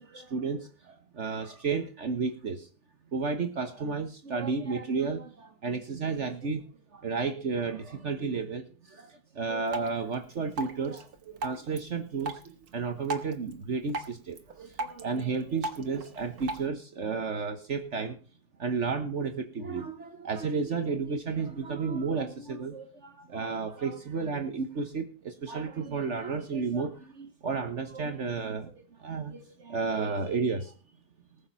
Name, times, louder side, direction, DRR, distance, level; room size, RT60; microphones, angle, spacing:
voice 1, 0.0-2.7 3.1-6.7 6.9-18.2 18.6-30.7, right 4 dB, 55° right, 7 dB, 1.4 m, -32 dB
Drip, 9.7-16.7, right 2 dB, 80° right, 1.9 m, -40 dB
19.5 x 7.2 x 5.6 m, 0.39 s
omnidirectional pair, 1.6 m